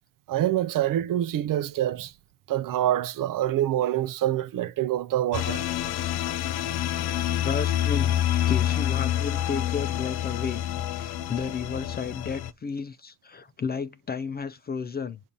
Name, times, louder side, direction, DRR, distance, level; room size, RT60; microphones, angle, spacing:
voice 1, 0.3-2.1 2.5-5.6, right 12 dB, 55° right, 0.5 m, -26 dB
sound 1, 5.3-12.5, left 12 dB, 65° left, 0.6 m, -27 dB
voice 2, 7.4-8.2 8.5-10.6 10.9-15.2, left 5 dB, 25° left, 0.4 m, -32 dB
7.1 x 2.7 x 5.2 m
supercardioid pair, 80°, 40 cm